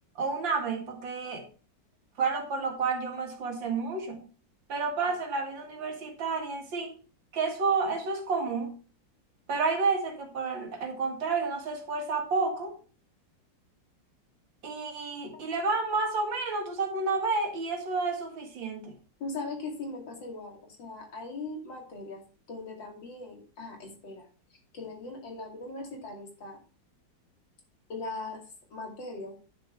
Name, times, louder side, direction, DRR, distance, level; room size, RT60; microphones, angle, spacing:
voice 1, 0.2-1.4 2.2-4.2 4.7-6.9 7.3-8.7 9.5-12.7 14.6-18.9, right 4 dB, 85° right, 4 dB, 2.7 m, -30 dB
voice 2, 19.2-22.2 22.5-24.3 24.7-26.6 27.9-28.4 28.7-29.3, left 3 dB, 85° left, 1 dB, 3.2 m, -39 dB
10.0 x 6.5 x 4.5 m, 0.38 s
omnidirectional pair, 2.0 m